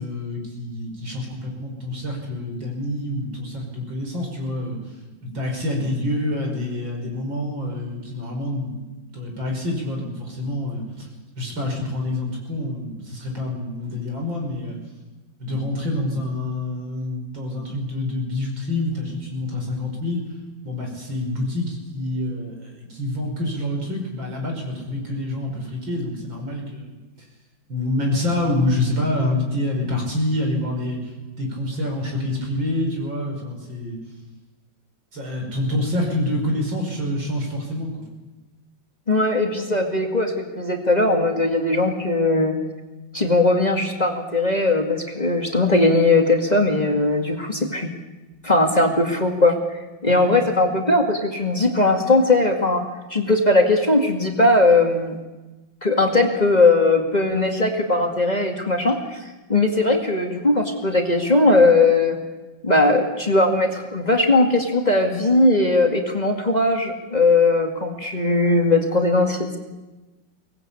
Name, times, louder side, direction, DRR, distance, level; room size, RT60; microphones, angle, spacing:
voice 1, 0.0-4.8 5.2-8.9 9.1-11.1 11.4-14.8 15.4-20.2 20.6-27.0 27.7-34.0 35.1-38.1 50.0-50.4, left 1 dB, 85° right, 1 dB, 6.2 m, -27 dB
voice 2, 39.1-42.6 43.1-47.9 48.4-49.6 50.0-52.8 53.1-55.2 55.8-59.2 59.5-62.2 62.6-69.6, left 2 dB, 20° left, 2 dB, 2.2 m, -19 dB
23.5 x 19.0 x 8.5 m, 1.2 s
omnidirectional pair, 2.1 m